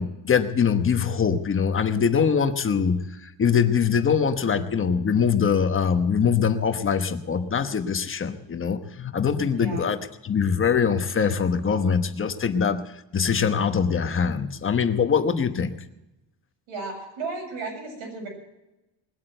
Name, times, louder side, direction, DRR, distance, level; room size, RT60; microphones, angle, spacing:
voice 1, 0.0-15.7, left 6 dB, 25° left, 8 dB, 1.1 m, -23 dB
voice 2, 9.5-9.8 16.7-18.3, right 3 dB, 70° right, 1 dB, 7.7 m, -34 dB
20.5 x 8.4 x 7.9 m, 0.97 s
cardioid pair, 135°, 49 cm